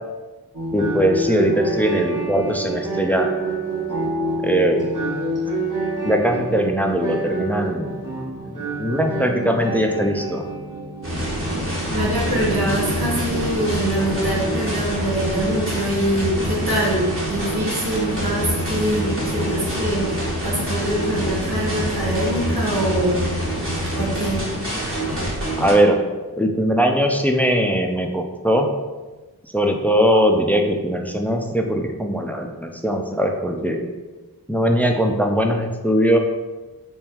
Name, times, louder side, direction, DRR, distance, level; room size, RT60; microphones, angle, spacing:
sound 1, 0.5-16.0, right 2 dB, 55° right, 1.1 m, -28 dB
voice 1, 0.7-3.3 4.4-4.9 6.0-8.0 8.5-10.4 25.6-26.0 26.4-28.7 29.5-33.8 34.5-36.2, equal, 5° left, 3 dB, 0.4 m, -20 dB
sound 2, 11.0-25.7, equal, 35° right, 1.2 m, -25 dB
voice 2, 11.9-23.3 23.9-24.5, right 1 dB, 80° right, -4 dB, 1.1 m, -24 dB
3.5 x 2.3 x 4.4 m, 1.2 s
wide cardioid pair, 40°, 38 cm